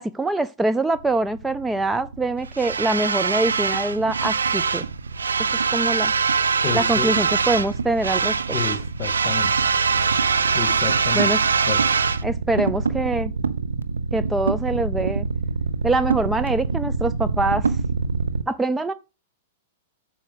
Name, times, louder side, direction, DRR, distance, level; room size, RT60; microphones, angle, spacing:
voice 1, 0.0-4.8 5.7-6.1 6.7-8.3 11.1-11.4 12.2-13.3 14.1-15.3 15.8-17.8 18.5-18.9, right 2 dB, 10° right, 0.4 m, -24 dB
sound 1, 1.0-18.4, right 5 dB, 80° right, 0.6 m, -23 dB
voice 2, 6.6-7.1 8.5-9.5 10.5-11.3 11.7-11.8, left 8 dB, 35° left, 1.7 m, -30 dB
8.9 x 6.4 x 5.0 m
figure-of-eight pair, 105°, 0 cm